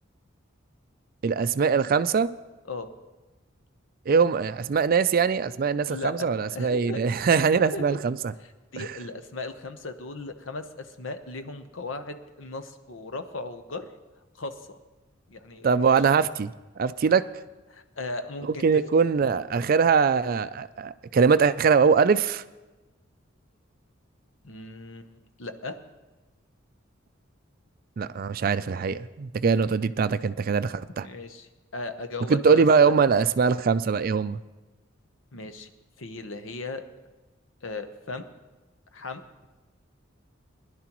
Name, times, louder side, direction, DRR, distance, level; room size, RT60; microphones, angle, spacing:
voice 1, 1.2-2.3 4.1-8.2 8.8-8.9 15.6-16.5 16.8-17.2 18.6-22.4 28.0-31.1 32.3-34.4, right 5 dB, 45° right, 14 dB, 0.4 m, -22 dB
voice 2, 5.9-7.0 7.3-7.4 7.7-8.0 8.4-13.8 14.4-14.8 15.3-16.0 17.7-18.8 24.4-25.8 31.0-32.9 35.3-35.7 36.0-36.8 37.6-38.3 38.9-39.2, left 2 dB, 70° left, 9 dB, 0.9 m, -37 dB
20.5 x 11.0 x 3.0 m, 1.2 s
head